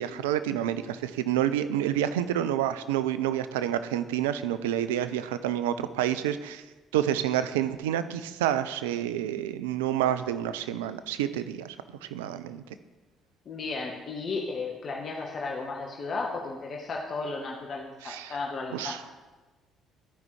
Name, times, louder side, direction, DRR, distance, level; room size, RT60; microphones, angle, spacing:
voice 1, 0.0-6.6 6.9-11.8 12.0-12.6 18.0-18.4 18.7-19.2, right 11 dB, 80° right, 12 dB, 0.3 m, -28 dB
voice 2, 13.4-19.0, left 3 dB, 50° left, 0 dB, 1.1 m, -34 dB
13.5 x 5.3 x 3.2 m, 1.2 s
hypercardioid pair, 50°, 0 cm